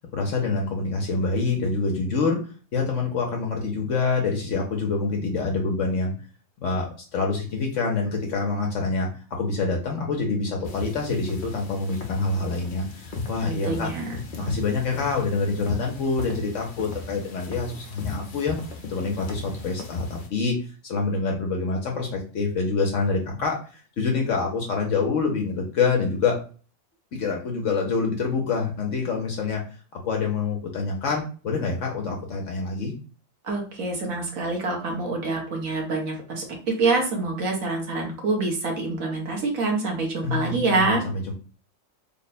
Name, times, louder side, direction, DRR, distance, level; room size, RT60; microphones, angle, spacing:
voice 1, 0.1-6.1 6.6-13.9 14.3-18.6 18.8-26.4 27.1-32.9 40.2-41.3, left 4 dB, 70° left, 1 dB, 1.0 m, -26 dB
sound 1, 10.6-20.3, left 3 dB, 50° left, 0.7 m, -37 dB
voice 2, 13.4-14.2 33.4-36.4 36.8-41.0, right 3 dB, 85° right, 0 dB, 1.5 m, -26 dB
3.6 x 2.1 x 4.0 m, 0.38 s
omnidirectional pair, 1.4 m